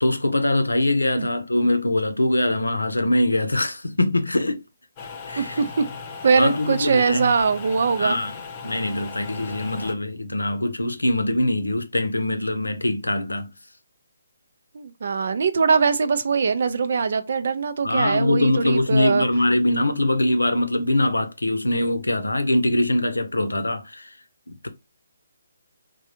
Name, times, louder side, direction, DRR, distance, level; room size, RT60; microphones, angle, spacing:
voice 1, 0.0-4.6 5.3-5.6 6.4-7.3 8.0-8.3 8.6-13.5 17.8-24.1 24.5-24.7, left 1 dB, 85° left, 0.6 m, -23 dB
sound 1, 5.0-9.9, left 5 dB, 30° left, 0.6 m, -37 dB
voice 2, 5.4-5.9 6.2-8.2 14.7-19.3, right 5 dB, 55° right, 0.5 m, -22 dB
3.3 x 2.2 x 2.8 m
figure-of-eight pair, 145°, 0 cm